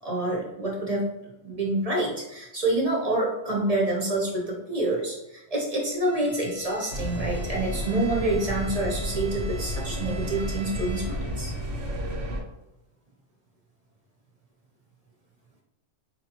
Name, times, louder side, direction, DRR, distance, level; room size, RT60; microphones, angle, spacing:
voice 1, 0.0-1.1 1.4-11.5, right 2 dB, 35° right, -2 dB, 0.7 m, -27 dB
Bowed string instrument, 6.0-11.5, right 1 dB, 15° left, 0.9 m, -46 dB
sound 1, 6.9-12.4, equal, 75° right, 1.1 m, -32 dB
4.4 x 2.7 x 2.8 m, 0.94 s
omnidirectional pair, 1.3 m